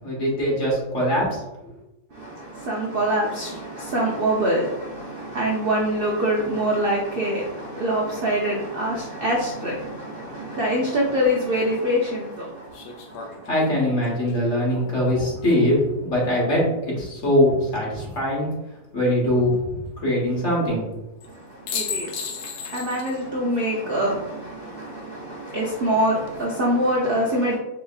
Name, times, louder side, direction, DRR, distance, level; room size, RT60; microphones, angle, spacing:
voice 1, 0.0-1.4 13.5-15.7 16.0-18.5 18.9-20.8, equal, 50° left, 1.6 m, -22 dB
voice 2, 2.1-13.5 21.2-27.6, equal, 80° right, 0.5 m, -25 dB
sound 1, 11.3-11.4 12.7-16.0 17.8-18.4 21.2-21.3 21.7-23.2 23.5-23.6 26.0-26.5, left 6 dB, 80° left, 1.1 m, -36 dB
4.8 x 2.8 x 2.3 m
omnidirectional pair, 1.7 m